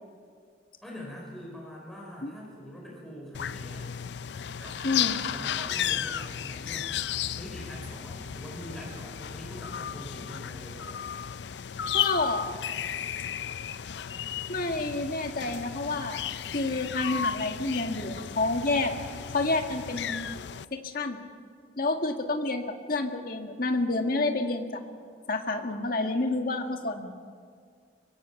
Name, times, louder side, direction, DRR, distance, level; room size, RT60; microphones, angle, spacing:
voice 1, 0.8-3.9 4.6-10.9, equal, ahead, -3 dB, 4.9 m, -44 dB
sound 1, 3.3-20.6, left 9 dB, 70° left, 0.5 m, -34 dB
voice 2, 4.8-5.2 11.9-12.5 14.5-16.2 16.5-18.9 19.3-20.3 20.7-21.2 21.8-24.8 25.3-27.1, left 2 dB, 50° left, 4 dB, 1.7 m, -29 dB
24.0 x 23.0 x 5.8 m, 2.1 s
head